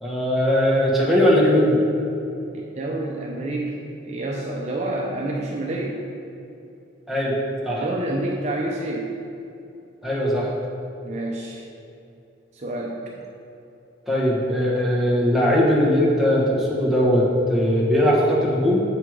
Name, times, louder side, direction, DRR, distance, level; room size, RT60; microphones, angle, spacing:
voice 1, 0.0-1.8 7.1-7.4 7.6-7.8 10.0-10.5 14.1-18.8, equal, ahead, -6 dB, 1.5 m, -19 dB
voice 2, 2.5-6.0 7.8-9.1 11.0-11.6 12.5-13.0, right 1 dB, 40° right, -2 dB, 0.7 m, -28 dB
7.8 x 5.6 x 4.8 m, 2.7 s
head